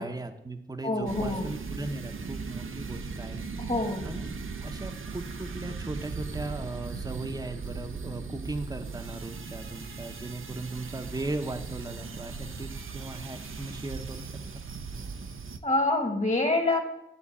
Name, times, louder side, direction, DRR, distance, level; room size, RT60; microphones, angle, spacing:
voice 1, 0.0-4.3 4.6-14.3, right 2 dB, 20° right, 7 dB, 0.8 m, -38 dB
voice 2, 0.8-1.5 3.6-4.1 15.6-16.8, left 2 dB, 35° left, 4 dB, 1.6 m, -26 dB
sound 1, 1.1-15.6, right 4 dB, 75° right, 0.7 m, -38 dB
11.0 x 3.9 x 7.1 m, 0.85 s
wide cardioid pair, 60°, 21 cm